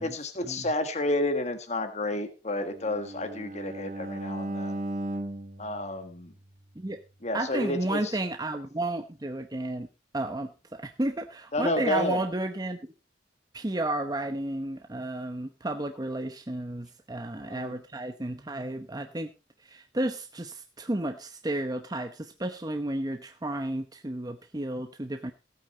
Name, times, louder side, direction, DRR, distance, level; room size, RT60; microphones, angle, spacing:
voice 1, 0.0-4.8 5.6-6.3 7.2-8.2 11.5-12.2 17.3-17.8, left 1 dB, 40° left, 7 dB, 1.5 m, -30 dB
Bowed string instrument, 2.7-6.8, right 1 dB, 40° right, 1.3 m, -37 dB
voice 2, 7.3-9.9 10.1-12.8 13.5-19.3 19.6-25.3, right 1 dB, 20° right, 6 dB, 0.9 m, -32 dB
16.5 x 9.0 x 4.2 m, 0.30 s
head